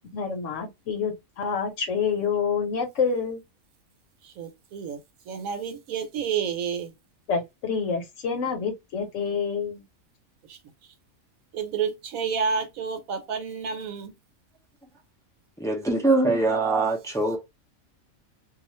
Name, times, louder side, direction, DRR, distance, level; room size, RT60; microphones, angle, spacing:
voice 1, 0.1-3.4 7.3-9.8, left 6 dB, 65° left, 1.0 m, -27 dB
voice 2, 4.2-5.0 5.3-6.9 10.5-10.6 11.5-14.1, right 6 dB, 80° right, 1.1 m, -30 dB
voice 3, 15.6-17.4, right 2 dB, 5° left, 0.4 m, -23 dB
2.4 x 2.4 x 3.0 m
omnidirectional pair, 1.5 m